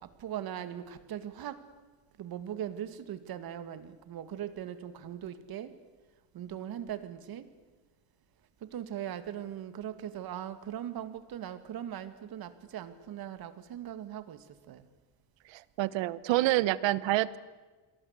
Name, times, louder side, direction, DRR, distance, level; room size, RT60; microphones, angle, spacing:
voice 1, 0.2-1.6 2.2-5.7 6.3-7.5 8.6-14.4 14.7-14.8, right 10 dB, 50° right, 12 dB, 2.3 m, -40 dB
voice 2, 15.5-17.4, right 16 dB, 70° right, 18 dB, 1.2 m, -27 dB
28.5 x 23.0 x 8.3 m, 1.3 s
cardioid pair, 135°, 46 cm